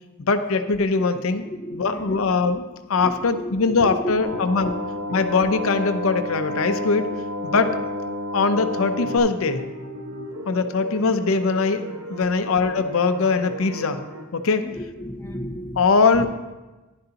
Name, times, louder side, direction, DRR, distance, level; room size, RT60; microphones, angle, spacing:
voice 1, 0.2-1.4 1.7-4.7 5.1-7.1 7.4-7.8 8.3-9.6 10.5-11.8 12.1-14.0 14.3-14.6 15.8-16.3, left 4 dB, 70° left, 9 dB, 0.6 m, -21 dB
voice 2, 1.4-2.2 2.9-4.8 5.1-5.2 12.2-12.3 14.5-16.3, equal, 10° left, 1 dB, 0.6 m, -34 dB
sound 1, 4.2-9.2, left 1 dB, 50° right, 1.3 m, -30 dB
sound 2, 8.9-14.3, right 1 dB, 70° right, 1.0 m, -37 dB
10.5 x 10.5 x 2.9 m, 1.1 s
head